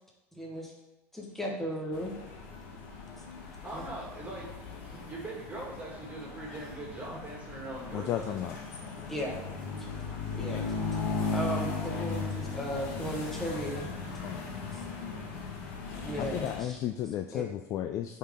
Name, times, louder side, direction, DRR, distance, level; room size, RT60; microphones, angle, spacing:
voice 1, 0.3-0.7 1.1-2.2 3.7-3.8 9.1-9.4 10.4-10.7 11.3-13.9 16.0-16.8 17.3-17.4, equal, 5° left, -3 dB, 1.3 m, -35 dB
sound 1, 1.9-16.6, left 4 dB, 75° left, 1.3 m, -37 dB
voice 2, 3.6-4.5 4.8-8.4, right 2 dB, 20° right, -3 dB, 2.1 m, -41 dB
voice 3, 7.9-8.6 14.2-14.4 16.2-18.2, left 11 dB, 45° left, 7 dB, 0.3 m, -34 dB
8.8 x 3.8 x 3.6 m, 0.99 s
supercardioid pair, 120°, 8 cm